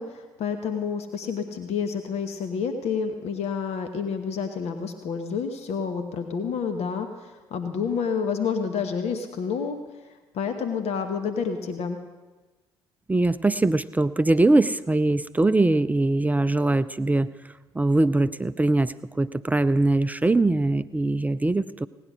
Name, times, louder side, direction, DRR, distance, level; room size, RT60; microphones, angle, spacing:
voice 1, 0.0-9.8 10.0-12.0, left 6 dB, 55° left, 7 dB, 1.2 m, -29 dB
voice 2, 13.1-17.3 17.7-21.9, right 2 dB, 10° right, 14 dB, 0.5 m, -22 dB
18.0 x 9.9 x 6.3 m, 1.2 s
figure-of-eight pair, 50°, 13 cm